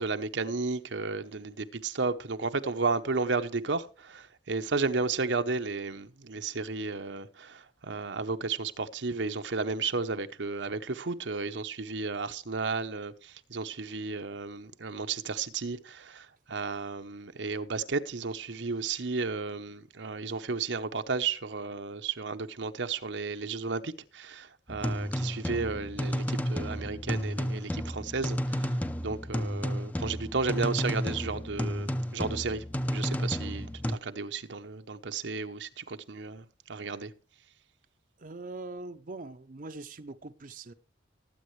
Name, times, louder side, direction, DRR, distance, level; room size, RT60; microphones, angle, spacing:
voice 1, 0.0-32.6 32.9-37.1, right 4 dB, 75° right, 0.9 m, -33 dB
sound 1, 24.7-34.0, equal, 10° left, 0.6 m, -32 dB
voice 2, 38.2-40.7, right 3 dB, 45° right, 0.6 m, -42 dB
19.0 x 8.7 x 3.2 m
head